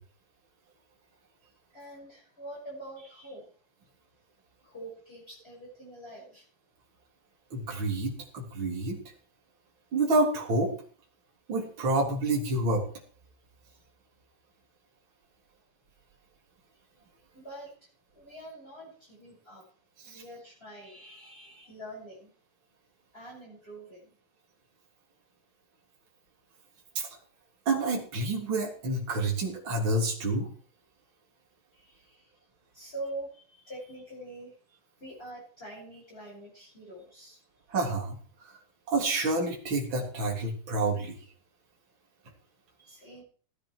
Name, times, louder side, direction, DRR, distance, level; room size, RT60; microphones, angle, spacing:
voice 1, 1.4-3.5 4.6-6.4 17.3-17.7 18.1-19.6 20.0-22.3 23.1-24.1 31.7-32.3 32.7-37.4 42.8-43.2, right 1 dB, 20° left, -6 dB, 7.0 m, -45 dB
voice 2, 7.5-9.0 9.9-10.7 11.5-12.8 20.0-20.2 27.0-27.1 27.7-30.5 37.7-38.2 38.9-41.2, right 2 dB, 40° right, -1 dB, 4.0 m, -28 dB
17.5 x 10.0 x 4.7 m, 0.42 s
omnidirectional pair, 3.4 m